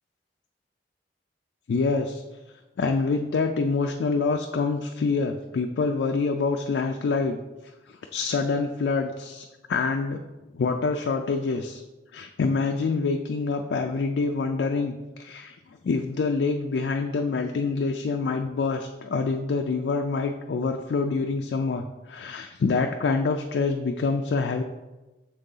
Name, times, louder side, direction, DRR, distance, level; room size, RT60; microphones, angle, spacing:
voice 1, 1.7-2.2 2.8-7.4 7.9-10.2 10.5-11.8 12.1-24.6, left 4 dB, 75° left, 4 dB, 0.4 m, -26 dB
6.4 x 3.7 x 3.9 m, 1.1 s
head